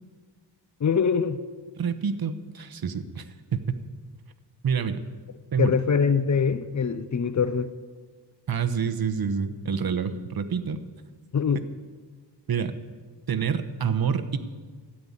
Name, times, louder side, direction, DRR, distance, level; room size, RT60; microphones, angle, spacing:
voice 1, 0.8-1.4 5.6-7.7 11.3-11.7, left 6 dB, 40° left, 0.6 m, -23 dB
voice 2, 1.8-3.2 3.5-3.8 4.6-5.0 5.5-5.7 8.5-10.8 12.5-12.8 13.3-14.4, right 6 dB, 55° right, 1.0 m, -27 dB
13.0 x 8.7 x 9.6 m
wide cardioid pair, 140°, 43 cm